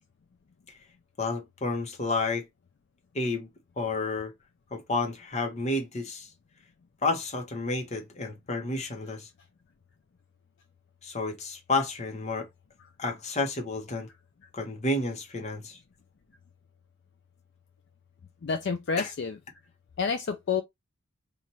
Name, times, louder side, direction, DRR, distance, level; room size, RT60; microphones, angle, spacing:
voice 1, 1.2-2.4 3.1-3.5 3.8-4.3 4.7-6.3 7.0-9.3 11.0-12.5 13.0-14.1 14.5-15.8 19.0-19.1, left 2 dB, 35° left, 0.9 m, -30 dB
voice 2, 18.4-19.4 20.0-20.6, left 5 dB, 55° left, 0.4 m, -29 dB
3.0 x 2.5 x 4.2 m
head